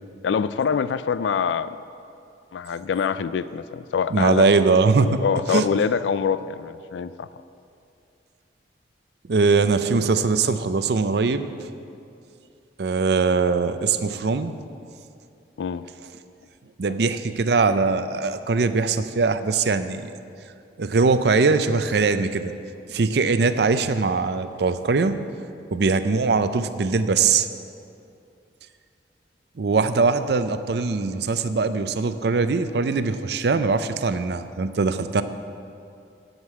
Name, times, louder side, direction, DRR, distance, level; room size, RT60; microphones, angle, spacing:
voice 1, 0.2-1.8 2.5-4.5 5.2-7.3 9.9-10.1 15.6-15.8, left 6 dB, 85° left, 15 dB, 0.3 m, -25 dB
voice 2, 4.1-5.2 5.5-5.7 9.3-11.5 12.8-14.5 16.8-20.1 20.8-22.5 22.9-25.2 25.7-27.5 29.6-35.2, right 4 dB, 65° right, 11 dB, 0.5 m, -21 dB
8.0 x 7.5 x 8.5 m, 2.5 s
head